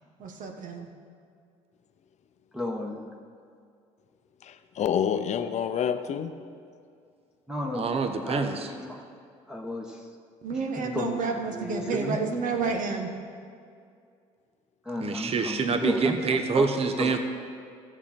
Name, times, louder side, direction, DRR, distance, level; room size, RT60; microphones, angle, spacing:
voice 1, 0.2-0.9 10.4-13.1, right 4 dB, 60° right, 1.4 m, -30 dB
voice 2, 2.5-3.1 7.5-7.9 8.2-9.0 9.5-10.1 10.5-12.2 14.8-16.7 17.0-17.2, left 1 dB, 5° right, 1.4 m, -33 dB
voice 3, 4.4-6.4 17.1-17.2, left 8 dB, 50° left, 0.7 m, -28 dB
voice 4, 7.7-8.7 15.0-17.2, right 4 dB, 40° right, 1.0 m, -26 dB
14.5 x 7.2 x 4.4 m
hypercardioid pair, 65°, 15 cm